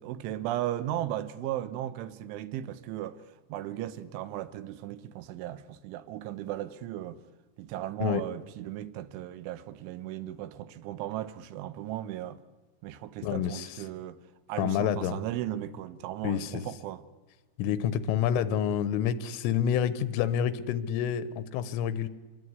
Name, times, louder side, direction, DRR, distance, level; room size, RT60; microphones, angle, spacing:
voice 1, 0.0-7.2 7.6-12.4 12.8-14.2 14.5-17.0, right 13 dB, 80° right, 3.3 m, -36 dB
voice 2, 13.2-13.7 14.6-15.2 16.2-16.7 17.6-22.1, left 9 dB, 90° left, 3.7 m, -28 dB
25.5 x 20.5 x 9.6 m
omnidirectional pair, 5.7 m